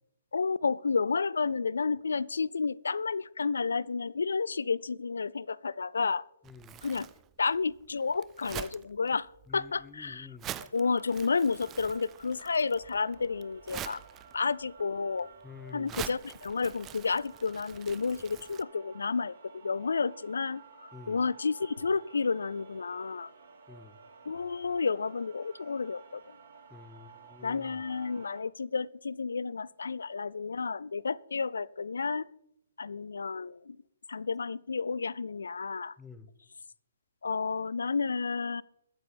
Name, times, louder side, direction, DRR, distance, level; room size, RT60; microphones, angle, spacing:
voice 1, 0.3-6.2 6.8-7.1 7.4-10.3 10.6-14.0 14.3-15.3 15.7-23.3 24.3-26.3 27.4-32.3 32.8-33.8 34.1-36.0 37.2-38.6, left 4 dB, 80° left, 23 dB, 0.4 m, -31 dB
voice 2, 6.4-6.8 9.5-10.5 15.4-16.0 20.9-21.2 23.7-24.0 26.7-27.8 36.0-36.3, left 5 dB, 10° left, 12 dB, 0.8 m, -49 dB
Crumpling crinkling, 6.4-18.6, right 12 dB, 20° right, 0.4 m, -46 dB
sound 1, 10.8-28.4, right 5 dB, 65° right, 3.1 m, -54 dB
22.0 x 7.6 x 3.5 m, 0.81 s
hypercardioid pair, 135°, 0 cm